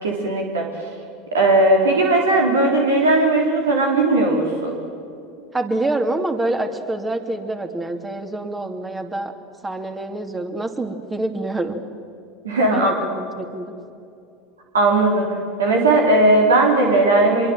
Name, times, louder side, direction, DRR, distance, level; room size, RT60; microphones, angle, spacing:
voice 1, 0.0-0.7 1.3-4.7 12.4-12.9 14.7-15.3 15.6-17.5, right 2 dB, 80° right, 1 dB, 3.6 m, -17 dB
voice 2, 5.5-9.3 9.6-11.8 12.7-13.7, right 2 dB, 15° right, 6 dB, 2.7 m, -26 dB
25.5 x 22.5 x 7.7 m, 2.6 s
figure-of-eight pair, 80°, 0 cm